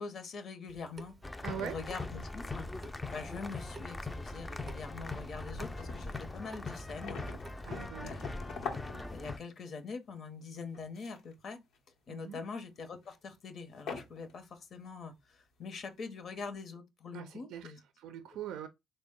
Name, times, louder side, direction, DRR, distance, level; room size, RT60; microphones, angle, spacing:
voice 1, 0.0-2.7 3.1-7.2 7.6-7.7 8.0-8.4 9.1-11.6 12.1-17.8, left 4 dB, 60° left, 0.8 m, -44 dB
Water tap faucet / Sink (filling or washing) / Drip, 0.7-7.8, right 4 dB, 35° right, 0.6 m, -55 dB
sound 1, 1.2-9.4, left 2 dB, 15° left, 0.4 m, -41 dB
voice 2, 1.4-1.8 7.7-8.2 12.1-12.4 17.1-18.7, right 9 dB, 85° right, 0.4 m, -42 dB
sound 2, 3.6-4.3 4.7-4.8 5.1-5.2 5.5-9.7 10.6-11.3 11.7-12.0 13.0-13.2 13.8-14.4 14.8-14.9, left 5 dB, 85° left, 0.9 m, -44 dB
3.6 x 2.1 x 3.5 m
cardioid pair, 90°, 0 cm